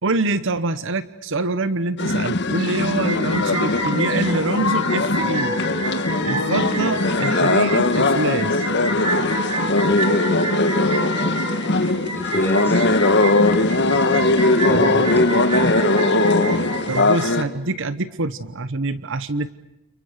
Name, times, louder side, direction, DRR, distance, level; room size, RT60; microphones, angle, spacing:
voice 1, 0.0-5.6 6.2-8.6 15.6-15.9 16.9-19.5, right 2 dB, 60° right, 14 dB, 1.1 m, -25 dB
sound 1, 2.0-17.4, left 2 dB, 50° left, 2.0 m, -20 dB
sound 2, 2.9-17.3, right 2 dB, 25° right, 4.0 m, -29 dB
voice 2, 10.0-11.3 12.1-12.9 14.7-15.3, equal, 10° left, 3 dB, 4.7 m, -31 dB
29.5 x 29.5 x 6.6 m, 0.88 s
head